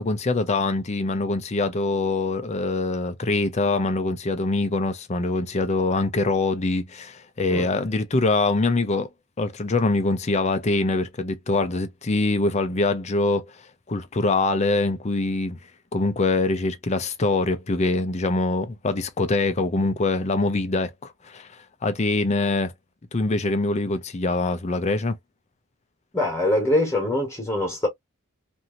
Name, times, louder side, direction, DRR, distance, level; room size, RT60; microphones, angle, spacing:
voice 1, 0.0-9.1 9.4-13.5 13.9-15.6 15.9-21.5 21.8-22.7 23.1-25.2, left 2 dB, 30° left, 0.5 m, -24 dB
voice 2, 26.1-27.9, left 1 dB, 15° left, 1.2 m, -23 dB
2.8 x 2.6 x 2.5 m
head